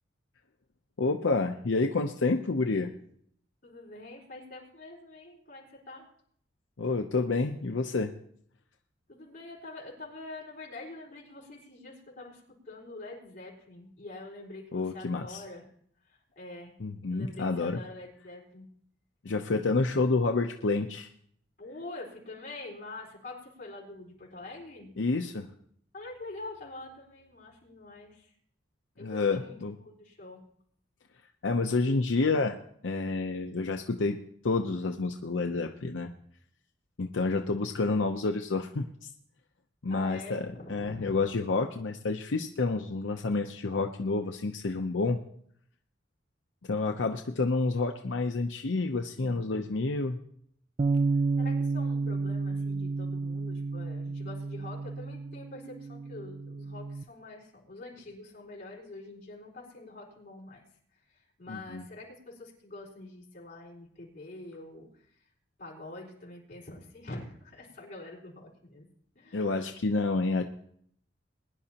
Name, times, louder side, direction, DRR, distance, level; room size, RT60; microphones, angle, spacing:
voice 1, 1.0-2.9 6.8-8.1 14.7-15.4 16.8-17.8 19.2-21.1 25.0-25.5 29.0-29.7 31.4-32.6 32.8-34.2 34.4-36.1 37.0-39.1 39.8-40.4 40.7-45.2 46.7-50.2 61.5-61.8 69.3-70.4, left 3 dB, 80° left, 4 dB, 0.7 m, -29 dB
voice 2, 3.6-6.1 9.1-15.7 16.0-16.7 17.1-18.7 21.6-24.9 25.9-28.3 29.0-30.4 37.2-37.5 39.9-41.1 51.4-60.6 60.9-65.3 65.6-68.9 69.1-69.6, left 2 dB, 45° left, -3 dB, 4.4 m, -45 dB
Bass guitar, 50.8-57.0, right 3 dB, 30° right, 0.4 m, -31 dB
21.5 x 11.0 x 2.9 m, 0.64 s
head